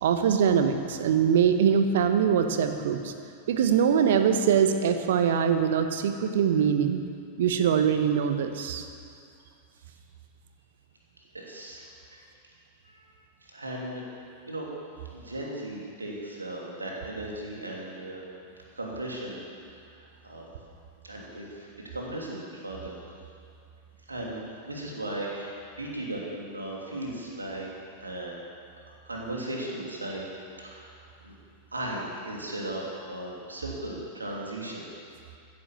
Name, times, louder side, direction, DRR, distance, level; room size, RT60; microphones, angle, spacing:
voice 1, 0.0-3.1 3.5-7.0 7.4-8.8, right 7 dB, 60° right, 8 dB, 1.1 m, -23 dB
voice 2, 11.3-12.2 12.9-13.1 13.5-14.0 14.5-14.7 15.1-18.2 18.8-19.4 20.2-20.5 21.0-22.9 24.1-27.7 28.0-28.4 29.1-30.3 30.6-31.4 31.7-34.9, right 1 dB, 80° right, -2 dB, 2.9 m, -36 dB
15.0 x 10.5 x 7.3 m, 2.4 s
figure-of-eight pair, 90°, 0 cm